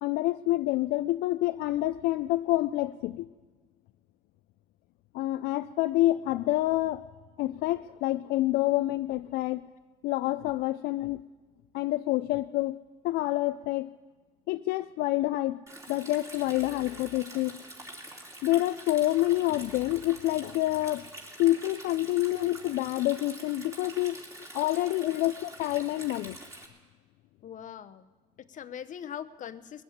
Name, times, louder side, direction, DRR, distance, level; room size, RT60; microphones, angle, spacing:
voice 1, 0.0-3.3 5.1-7.0 7.4-9.6 10.0-11.2 11.7-12.8 13.0-13.9 14.5-15.6 15.9-17.6 18.4-21.0 21.4-24.2 24.5-26.4, left 16 dB, 75° left, 10 dB, 0.4 m, -27 dB
Stream, 15.7-26.7, right 1 dB, 20° right, 3.1 m, -46 dB
voice 2, 25.0-25.5 27.4-28.1 28.4-29.8, left 9 dB, 50° left, 14 dB, 0.8 m, -42 dB
20.5 x 7.9 x 8.4 m, 1.3 s
supercardioid pair, 85°, 16 cm